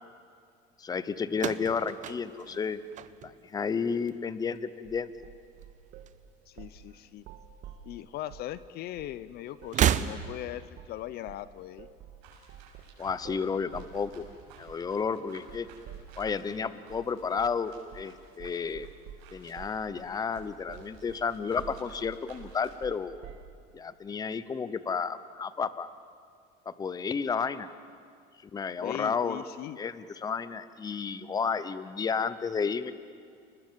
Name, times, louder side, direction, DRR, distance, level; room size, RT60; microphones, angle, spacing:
voice 1, 0.8-2.8 3.2-5.1 13.0-14.3 14.6-15.7 16.2-18.9 19.3-23.1 23.7-25.9 26.7-27.7 28.5-29.4 29.8-32.9, left 5 dB, 20° left, 14 dB, 0.8 m, -32 dB
sound 1, 1.3-3.7 4.0-4.6 5.6-6.6 6.9-7.0 8.1-8.2 9.6-10.6, right 10 dB, 40° right, 0.9 m, -31 dB
sound 2, 4.8-6.2 6.6-6.8 7.2-8.5 9.0-9.2 9.6-9.8 10.2-10.4 10.8-11.0 11.3-16.5 16.9-17.1 17.4-17.6 17.9-18.1 18.4-23.5, right 10 dB, 60° right, 1.8 m, -49 dB
voice 2, 6.5-7.3 7.8-11.9 28.8-29.8, left 13 dB, 55° left, 16 dB, 0.7 m, -39 dB
sound 3, 12.2-22.8, right 6 dB, 80° right, 6.8 m, -57 dB
30.0 x 20.0 x 7.6 m, 2.2 s
cardioid pair, 130°, 20 cm